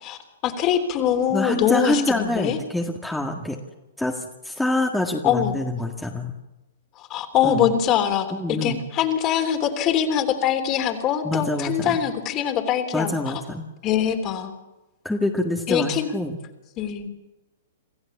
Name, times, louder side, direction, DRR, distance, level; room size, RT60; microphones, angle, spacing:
voice 1, 0.0-2.6 5.2-5.5 7.0-13.4 13.8-14.5 15.7-16.1 16.8-17.1, left 9 dB, 35° left, 6 dB, 3.4 m, -23 dB
voice 2, 1.3-3.6 4.0-6.4 7.4-7.6 8.3-8.8 11.2-12.0 12.9-13.7 15.0-16.4, left 1 dB, 5° left, 2 dB, 1.8 m, -26 dB
27.0 x 15.0 x 7.3 m, 1.0 s
hypercardioid pair, 120°, 0 cm